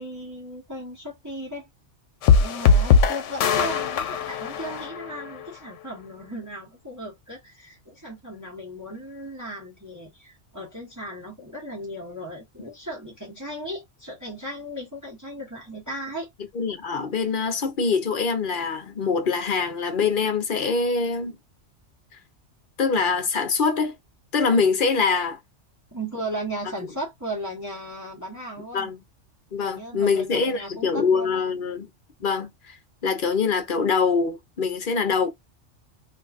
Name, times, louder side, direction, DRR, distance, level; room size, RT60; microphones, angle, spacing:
voice 1, 0.0-1.7 2.3-16.3 25.9-28.9 29.6-31.4, right 1 dB, 15° right, 1.0 m, -36 dB
sound 1, 2.2-5.5, left 5 dB, 85° left, 0.9 m, -20 dB
voice 2, 16.5-21.4 22.8-23.9 24.3-25.4 28.7-29.0 29.5-31.9 32.2-32.7 33.0-35.3, left 5 dB, 50° left, 0.9 m, -24 dB
3.8 x 2.6 x 2.4 m
omnidirectional pair, 1.2 m